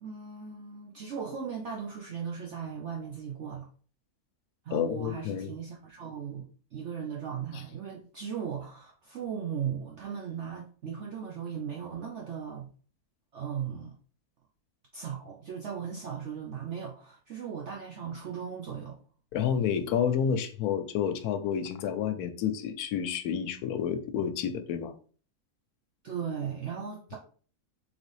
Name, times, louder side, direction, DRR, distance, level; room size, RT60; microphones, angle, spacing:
voice 1, 0.0-3.7 4.6-12.7 13.3-14.0 14.9-19.0 26.0-27.2, right 7 dB, 60° right, 0.9 m, -37 dB
voice 2, 4.7-5.5 19.3-24.9, left 8 dB, 85° left, 1.1 m, -29 dB
4.0 x 3.5 x 3.1 m
omnidirectional pair, 1.6 m